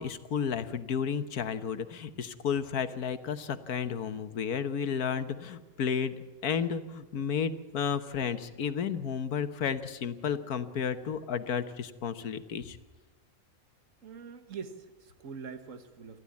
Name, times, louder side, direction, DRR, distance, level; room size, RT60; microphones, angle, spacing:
voice 1, 0.0-6.1 6.4-12.8, left 7 dB, 85° left, 10 dB, 1.6 m, -32 dB
voice 2, 14.0-16.2, right 6 dB, 60° right, 9 dB, 1.8 m, -43 dB
28.0 x 12.0 x 8.5 m, 1.2 s
omnidirectional pair, 1.5 m